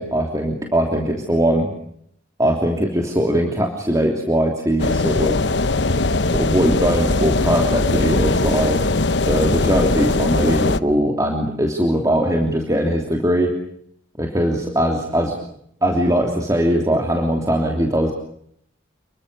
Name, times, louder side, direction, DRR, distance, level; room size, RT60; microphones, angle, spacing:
voice 1, 0.0-1.7 2.4-5.5 6.3-8.8 9.2-13.5 14.2-15.4 15.8-18.1, equal, 20° right, 1 dB, 3.1 m, -20 dB
sound 1, 4.8-10.8, left 3 dB, 70° left, 1.0 m, -20 dB
29.0 x 23.0 x 6.8 m, 0.69 s
head